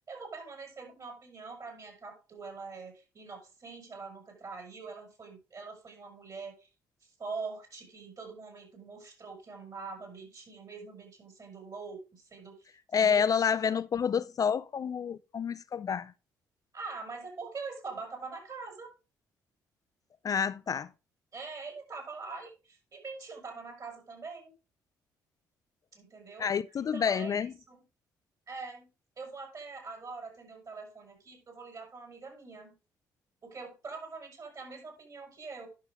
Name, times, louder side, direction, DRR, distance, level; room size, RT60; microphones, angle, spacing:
voice 1, 0.0-6.7 7.0-12.7 13.0-13.5 16.7-18.9 21.3-24.5 25.9-26.5 26.8-27.8 28.5-28.9 29.2-32.7 33.4-35.7, right 4 dB, 45° right, 6.3 m, -44 dB
voice 2, 12.9-16.1 20.2-20.9 26.4-27.5, left 7 dB, 45° left, 0.4 m, -28 dB
11.0 x 6.2 x 3.6 m
hypercardioid pair, 55°, 9 cm